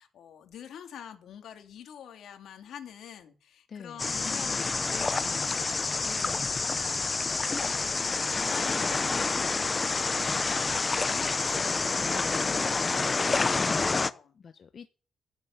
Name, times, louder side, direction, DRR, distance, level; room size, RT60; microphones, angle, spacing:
voice 1, 0.0-14.4, left 9 dB, 80° left, 3.0 m, -47 dB
voice 2, 3.7-7.2 12.8-13.4 14.3-14.9, left 6 dB, 55° left, 1.1 m, -48 dB
sound 1, 4.0-14.1, left 4 dB, 30° left, 0.9 m, -28 dB
15.0 x 8.2 x 9.6 m
cardioid pair, 85°, 0 cm